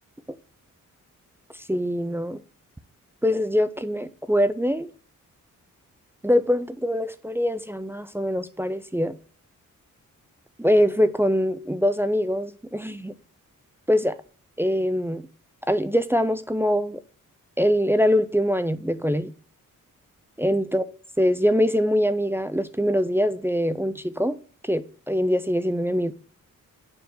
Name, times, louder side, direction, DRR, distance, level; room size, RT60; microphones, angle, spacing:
voice 1, 1.7-2.4 3.2-4.9 6.2-9.1 10.6-13.1 13.9-14.2 14.6-15.3 15.7-17.0 17.6-19.3 20.4-20.8 21.2-24.4 24.6-26.1, equal, 10° right, 0.3 m, -23 dB
6.8 x 4.4 x 4.5 m
wide cardioid pair, 135°, 32 cm